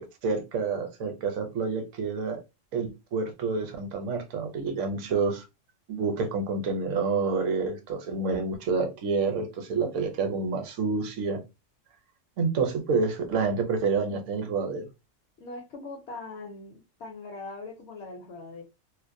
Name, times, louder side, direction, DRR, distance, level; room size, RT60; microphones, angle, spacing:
voice 1, 0.0-2.4 2.7-5.4 5.9-11.4 12.4-14.9, right 4 dB, 75° right, 0.9 m, -28 dB
voice 2, 15.4-18.6, left 3 dB, 65° left, 0.8 m, -41 dB
2.4 x 2.0 x 2.5 m
omnidirectional pair, 1.3 m